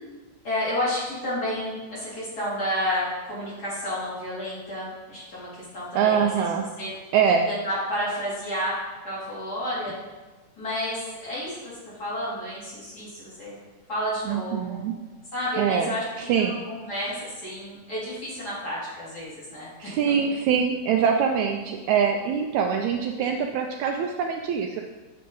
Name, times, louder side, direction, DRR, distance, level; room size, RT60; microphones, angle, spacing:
voice 1, 0.4-6.5 6.8-6.9 7.5-8.8 9.0-9.9 10.6-13.6 13.9-14.8 15.3-20.3, left 1 dB, 30° left, -9 dB, 3.1 m, -31 dB
voice 2, 5.9-6.6 7.1-7.4 14.3-14.9 15.6-16.5 19.8-24.8, right 7 dB, 90° right, 3 dB, 1.6 m, -24 dB
7.9 x 7.6 x 3.9 m, 1.2 s
omnidirectional pair, 3.9 m